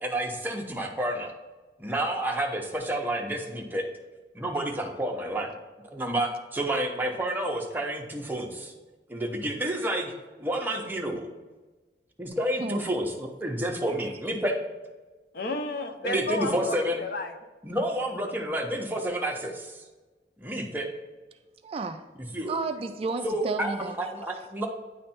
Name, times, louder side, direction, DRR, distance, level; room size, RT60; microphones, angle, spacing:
voice 1, 0.0-1.3 1.8-3.8 4.3-5.5 5.9-8.7 9.1-10.1 10.4-11.3 12.2-14.5 16.0-17.0 17.6-19.8 20.4-20.9 22.3-22.6 23.2-24.7, right 1 dB, 10° right, 1 dB, 0.8 m, -30 dB
voice 2, 15.3-17.3, left 3 dB, 60° left, 6 dB, 0.7 m, -32 dB
voice 3, 21.6-22.0 22.5-24.0, right 4 dB, 35° right, 8 dB, 0.3 m, -32 dB
9.5 x 3.3 x 4.3 m, 1.3 s
head